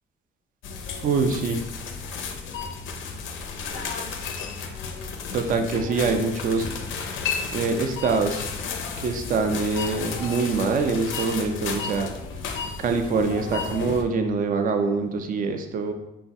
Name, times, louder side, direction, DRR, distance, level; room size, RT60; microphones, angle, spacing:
sound 1, 0.6-14.0, left 5 dB, 80° left, 0.4 m, -33 dB
voice 1, 1.0-1.6 5.3-6.7 7.5-8.5 9.0-12.1 12.8-15.9, right 4 dB, 45° right, 6 dB, 0.4 m, -24 dB
3.1 x 2.2 x 2.6 m, 0.93 s
cardioid pair, 90°, 20 cm